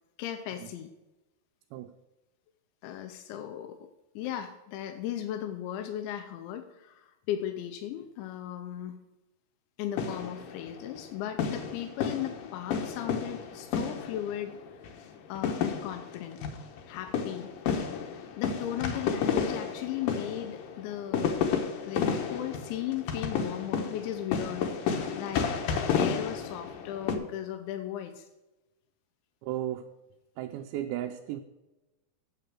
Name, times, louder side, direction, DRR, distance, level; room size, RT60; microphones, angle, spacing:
voice 1, 0.2-0.9 2.8-3.9 4.2-9.0 9.8-14.8 15.3-16.4 16.9-21.4 21.9-24.7 25.2-28.3, left 11 dB, 90° left, 6 dB, 3.1 m, -37 dB
sound 1, 10.0-11.0 11.4-14.5 14.8-15.0 15.3-27.2, left 6 dB, 70° left, 2.3 m, -31 dB
voice 2, 29.4-29.9 30.4-31.4, right 12 dB, 85° right, 3 dB, 2.8 m, -34 dB
8.8 x 8.1 x 6.2 m, 1.0 s
omnidirectional pair, 5.1 m